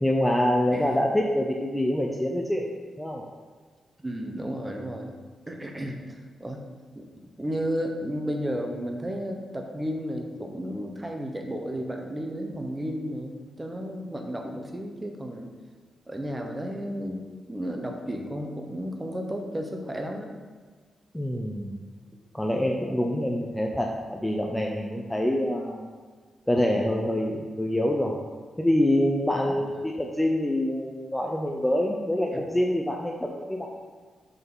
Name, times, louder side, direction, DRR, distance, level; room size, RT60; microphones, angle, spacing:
voice 1, 0.0-2.7 3.0-3.2 21.1-21.8 22.3-25.9 26.5-28.1 28.6-33.7, left 1 dB, 5° left, 0 dB, 0.6 m, -26 dB
voice 2, 4.0-5.2 5.5-6.6 6.9-7.1 7.4-15.5 16.1-20.3 29.4-29.5 32.3-32.4, equal, 15° right, 2 dB, 1.0 m, -33 dB
6.3 x 4.8 x 6.1 m, 1.5 s
cardioid pair, 125°, 0 cm